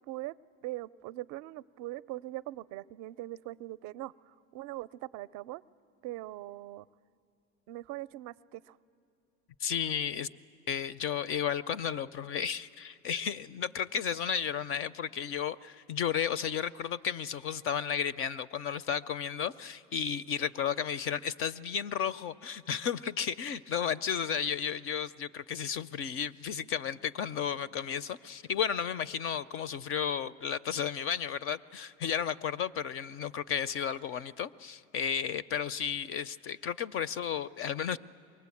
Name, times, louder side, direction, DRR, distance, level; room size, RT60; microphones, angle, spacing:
voice 1, 0.6-5.6 6.0-6.9 7.7-8.8, right 17 dB, 45° right, 18 dB, 0.5 m, -41 dB
voice 2, 9.6-10.3 10.7-38.0, left 8 dB, 35° left, 19 dB, 0.4 m, -33 dB
23.0 x 19.5 x 8.4 m, 2.5 s
hypercardioid pair, 100°, 39 cm